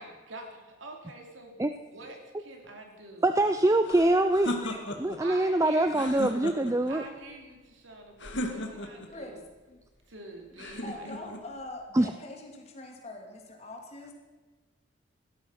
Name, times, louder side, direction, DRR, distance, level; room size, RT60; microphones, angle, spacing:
voice 1, 0.0-1.6 1.9-3.3 5.2-6.3 6.9-9.4 10.1-11.1, right 2 dB, 85° right, 3 dB, 3.1 m, -46 dB
voice 2, 3.2-4.5 5.0-7.0 11.9-12.1, right 1 dB, 15° right, 9 dB, 0.5 m, -24 dB
sound 1, 3.8-5.2 5.9-6.9 8.2-9.1 10.6-11.4, left 1 dB, 65° left, 2.0 m, -36 dB
voice 3, 8.4-9.4 9.7-9.8 10.5-14.1, left 2 dB, 35° left, 2 dB, 2.6 m, -44 dB
16.0 x 13.0 x 5.8 m, 1.3 s
head